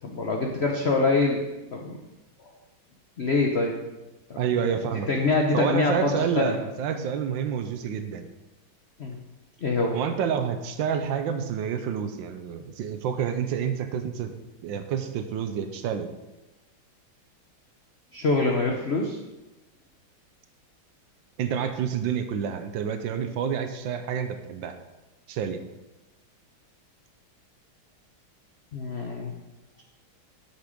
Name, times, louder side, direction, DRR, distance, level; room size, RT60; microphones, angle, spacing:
voice 1, 0.0-1.5 1.7-2.0 3.2-3.8 4.9-6.6 9.0-9.2 9.6-10.0 18.1-19.2 28.7-29.3, left 3 dB, 70° left, 2 dB, 0.6 m, -25 dB
voice 2, 4.4-5.1 5.5-8.3 9.9-14.3 14.6-16.1 21.4-24.8 25.3-25.6, right 7 dB, 75° right, 8 dB, 1.3 m, -28 dB
8.1 x 6.0 x 5.1 m, 1.0 s
omnidirectional pair, 2.3 m